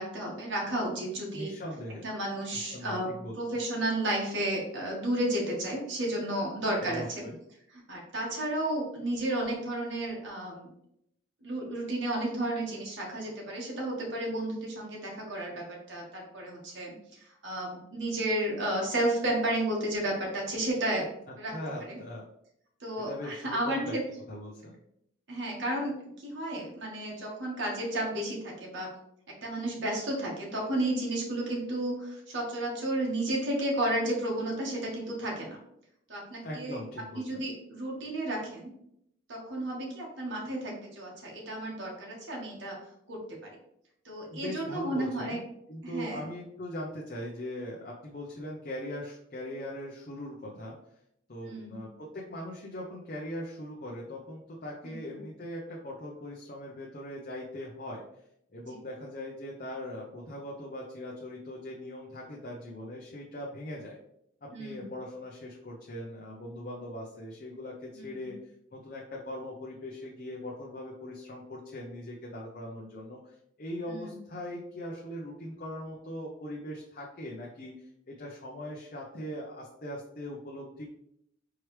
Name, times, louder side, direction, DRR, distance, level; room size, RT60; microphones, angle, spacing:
voice 1, 0.0-1.5 2.0-7.0 7.9-10.7 11.4-16.9 17.4-21.1 21.4-21.5 21.9-22.0 22.8-24.0 25.3-28.9 29.4-35.6 36.1-36.8 37.1-38.7 39.3-42.8 43.1-43.5 44.0-45.4 45.8-46.2 51.4-51.7 54.8-55.2 58.7-58.8 64.5-64.9 67.9-68.3 73.9-74.1, right 1 dB, 80° right, -2 dB, 1.3 m, -32 dB
voice 2, 1.3-2.1 2.5-3.4 6.8-7.4 21.5-22.3 23.0-23.9 24.3-24.8 36.4-37.4 44.3-50.7 51.3-58.0 58.5-64.0 64.4-68.4 68.7-81.0, left 1 dB, 45° left, -3 dB, 0.6 m, -40 dB
4.7 x 3.1 x 3.1 m, 0.76 s
head